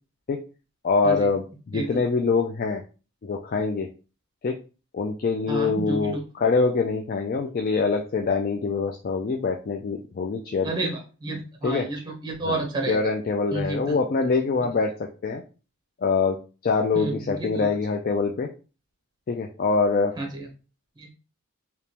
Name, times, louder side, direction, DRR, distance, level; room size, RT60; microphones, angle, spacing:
voice 1, 0.8-2.8 3.2-3.9 4.4-4.6 4.9-10.9 11.6-11.9 12.5-12.6 12.9-14.9 15.2-15.4 16.0-18.5 19.3-20.1, left 4 dB, 40° left, 4 dB, 0.3 m, -24 dB
voice 2, 5.5-6.2 10.6-13.0 13.5-14.0 16.9-17.7 20.2-20.5 21.0-21.1, right 2 dB, 20° right, 2 dB, 0.8 m, -30 dB
3.4 x 2.9 x 2.9 m, 0.34 s
head